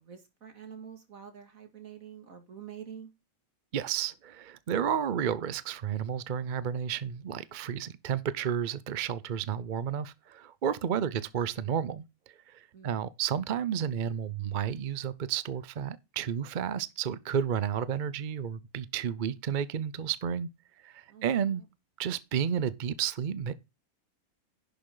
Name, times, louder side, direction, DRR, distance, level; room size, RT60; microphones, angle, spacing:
voice 1, 0.0-3.1 12.7-13.1 21.1-21.7, right 8 dB, 70° right, 2.6 m, -47 dB
voice 2, 3.7-20.5 20.8-21.6 22.0-23.5, right 8 dB, 50° right, 0.6 m, -32 dB
11.0 x 7.0 x 3.8 m
omnidirectional pair, 1.5 m